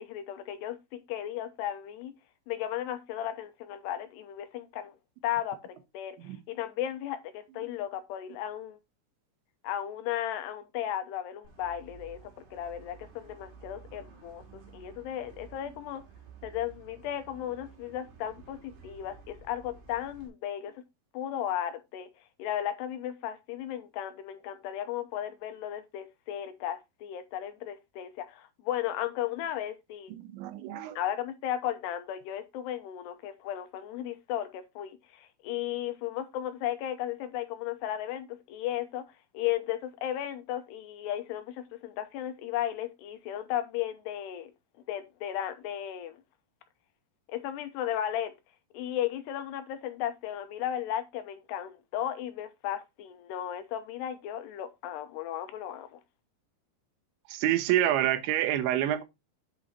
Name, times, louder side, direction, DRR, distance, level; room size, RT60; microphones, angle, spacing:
voice 1, 0.0-2.1 2.5-5.0 5.2-8.8 9.6-16.0 16.4-20.7 21.1-22.1 22.4-30.1 31.0-39.1 39.3-44.5 44.9-46.2 47.3-48.3 48.7-56.0, left 11 dB, 80° left, 2.9 m, -35 dB
sound 1, 11.4-20.3, right 6 dB, 65° right, 4.6 m, -52 dB
voice 2, 30.2-31.0 57.3-59.0, right 12 dB, 85° right, 3.3 m, -27 dB
8.8 x 6.1 x 4.3 m
omnidirectional pair, 5.1 m